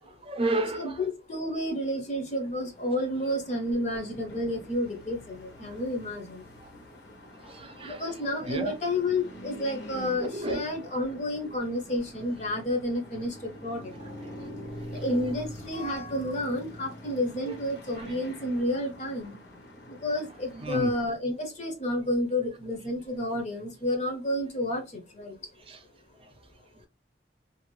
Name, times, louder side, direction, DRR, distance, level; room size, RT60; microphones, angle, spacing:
voice 1, 0.2-1.0 7.4-8.0 8.5-8.7 10.2-10.7 14.9-15.0 17.5-17.6 20.6-20.9 25.7-25.8, right 2 dB, 30° right, 0.5 m, -31 dB
voice 2, 0.7-6.5 7.8-13.9 14.9-19.4 19.9-25.5, left 1 dB, 40° left, 0.7 m, -30 dB
sound 1, 2.2-21.1, left 1 dB, 80° left, 0.9 m, -45 dB
2.6 x 2.4 x 3.0 m
head